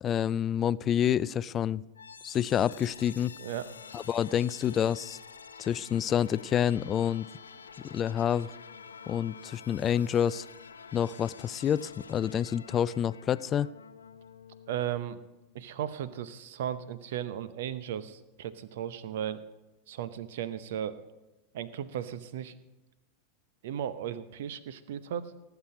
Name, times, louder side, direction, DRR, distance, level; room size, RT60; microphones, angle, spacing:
voice 1, 0.0-1.8 2.2-3.4 3.9-5.2 5.6-7.3 7.8-8.5 9.1-10.5 10.9-13.7, left 9 dB, 25° left, 19 dB, 0.3 m, -28 dB
sound 1, 1.9-15.8, left 6 dB, 70° left, 0.6 m, -49 dB
voice 2, 14.7-15.2 15.5-19.4 19.9-21.0 21.5-22.5 23.6-25.3, right 10 dB, 55° right, 15 dB, 0.8 m, -36 dB
18.5 x 8.2 x 5.1 m, 1.0 s
figure-of-eight pair, 90°, 0 cm